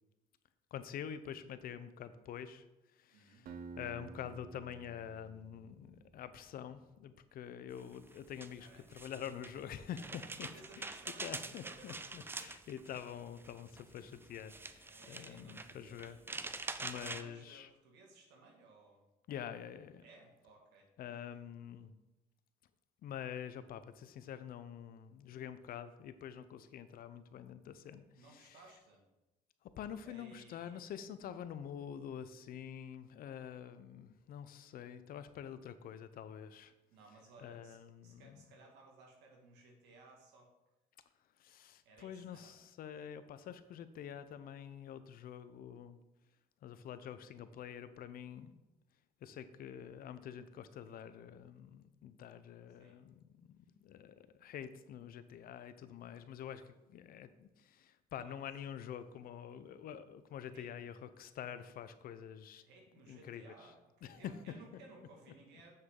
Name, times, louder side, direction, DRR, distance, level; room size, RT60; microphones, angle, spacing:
voice 1, 0.7-2.7 2.9-10.5 10.8-17.7 19.3-20.1 21.0-21.9 23.0-28.6 29.6-36.7 37.4-38.4 41.4-46.0 46.6-48.5 49.2-62.6 63.1-63.7 64.0-64.4, left 9 dB, 60° left, 12 dB, 0.6 m, -47 dB
voice 2, 3.1-3.5 8.6-8.9 10.5-12.3 14.9-16.2 16.9-19.1 20.0-20.9 28.2-29.0 30.0-30.9 36.9-37.8 38.0-40.5 41.8-42.5 52.8-53.0 58.1-58.4 60.5-61.0 62.6-65.8, right 3 dB, 90° right, 0 dB, 1.9 m, -59 dB
Acoustic guitar, 3.5-6.5, right 4 dB, 60° right, 0.7 m, -52 dB
sound 1, 7.8-17.2, right 3 dB, 15° right, 0.4 m, -46 dB
7.2 x 6.6 x 3.8 m, 1.0 s
cardioid pair, 110°, 17 cm